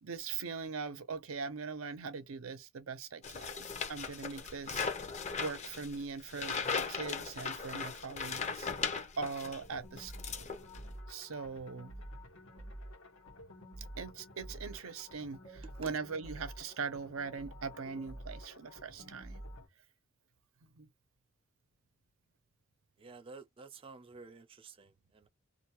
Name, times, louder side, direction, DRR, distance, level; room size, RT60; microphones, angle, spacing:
voice 1, 0.0-4.9 5.4-8.7 9.2-10.5 11.1-11.9 14.0-19.5 20.8-20.9, right 5 dB, 85° right, 0.6 m, -41 dB
sound 1, 3.2-9.6 10.0-10.9, left 5 dB, 35° left, 0.6 m, -38 dB
sound 2, 9.6-19.7, equal, 85° left, 1.2 m, -49 dB
voice 2, 23.0-25.3, right 4 dB, 25° right, 0.4 m, -51 dB
2.5 x 2.3 x 2.9 m
head